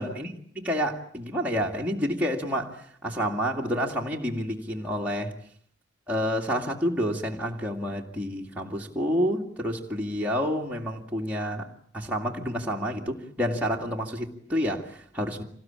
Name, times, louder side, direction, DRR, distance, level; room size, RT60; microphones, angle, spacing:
voice 1, 0.0-5.3 6.1-11.7 11.9-15.4, equal, 10° right, 2.2 m, -29 dB
26.5 x 19.5 x 8.8 m
head